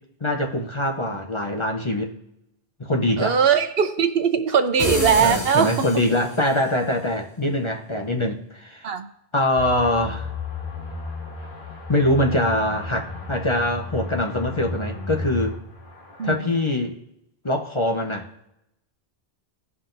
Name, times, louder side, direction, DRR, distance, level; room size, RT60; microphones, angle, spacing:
voice 1, 0.2-2.1 2.8-3.4 5.2-8.9 9.3-10.3 11.9-15.6 16.2-16.9 17.4-18.3, left 1 dB, 30° left, 0.7 m, -23 dB
voice 2, 3.2-5.7 8.8-9.1 16.2-16.3, right 7 dB, 65° right, 0.9 m, -20 dB
sound 1, 4.8-6.6, left 1 dB, 70° left, 3.5 m, -28 dB
sound 2, 9.6-16.3, left 2 dB, 50° left, 1.6 m, -33 dB
16.5 x 5.8 x 2.6 m
omnidirectional pair, 1.1 m